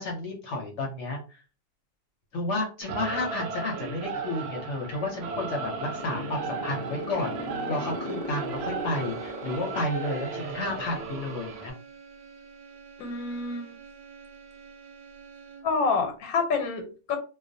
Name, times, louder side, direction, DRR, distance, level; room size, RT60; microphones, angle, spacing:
voice 1, 0.0-1.4 2.3-7.3 7.7-11.7, left 2 dB, 65° left, 0.8 m, -31 dB
Singing / Musical instrument, 2.8-11.7, right 5 dB, 65° right, 0.6 m, -36 dB
sound 1, 4.8-11.3, left 1 dB, 30° left, 0.7 m, -38 dB
sound 2, 8.7-15.9, right 5 dB, 90° right, 1.1 m, -48 dB
voice 2, 13.0-13.7 15.6-17.2, left 4 dB, 90° left, 1.1 m, -27 dB
2.3 x 2.1 x 2.5 m
omnidirectional pair, 1.5 m